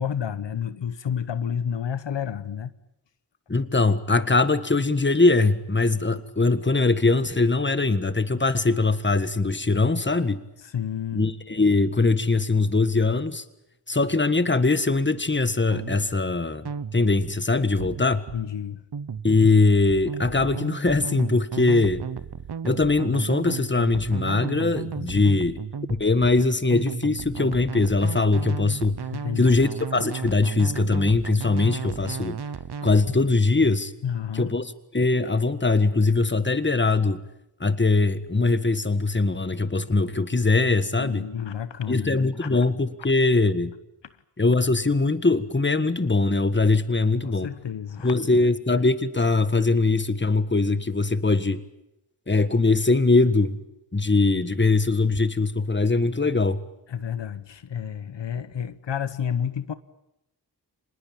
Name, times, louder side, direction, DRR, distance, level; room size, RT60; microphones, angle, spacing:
voice 1, 0.0-2.7 10.6-11.2 18.3-18.8 25.2-25.3 29.1-29.6 34.0-34.5 41.0-42.7 47.2-48.4 56.9-59.7, left 8 dB, 85° left, 14 dB, 1.0 m, -30 dB
voice 2, 3.5-10.4 11.1-13.4 13.9-18.2 19.2-22.0 22.6-25.6 26.0-29.0 29.4-32.4 32.8-33.9 34.3-34.6 34.9-37.2 37.6-41.2 41.9-43.7 44.4-47.5 48.0-51.6 52.3-53.6 53.9-56.6, left 3 dB, 25° left, 12 dB, 1.6 m, -21 dB
sound 1, 15.7-16.1 16.7-17.1 17.8-18.5 18.9-19.3 19.9-33.0, right 6 dB, 65° right, 1.0 m, -34 dB
25.5 x 20.0 x 8.9 m, 0.89 s
cardioid pair, 45°, 42 cm